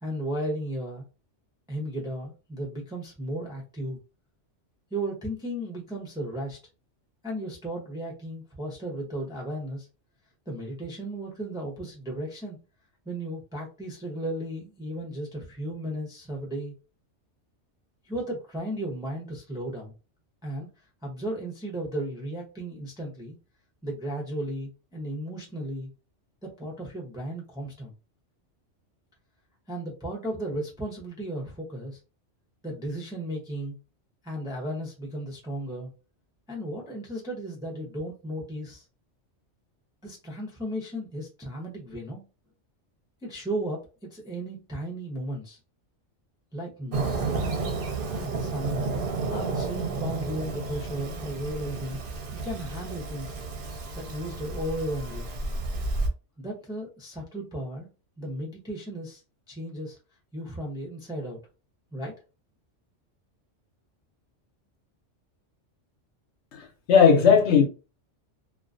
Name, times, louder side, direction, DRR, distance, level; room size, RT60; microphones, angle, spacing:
voice 1, 0.0-1.0 1.7-4.0 4.9-6.6 7.2-9.9 10.5-12.6 13.1-16.7 18.0-19.9 20.4-20.7 21.0-23.4 23.8-25.9 26.4-27.9 29.7-32.0 32.6-33.8 34.2-35.9 36.5-38.8 40.0-42.2 43.2-43.8 44.1-45.6 46.5-47.8 48.2-48.9 49.3-52.0 52.4-53.4 53.9-55.3 56.4-57.9 58.2-59.2 59.5-60.0 60.3-61.4 61.9-62.2, right 1 dB, 5° right, 0.4 m, -35 dB
Fireworks, 46.9-56.1, right 3 dB, 55° right, 0.7 m, -32 dB
voice 2, 66.5-67.6, left 6 dB, 70° left, 0.9 m, -18 dB
2.3 x 2.2 x 2.4 m
omnidirectional pair, 1.2 m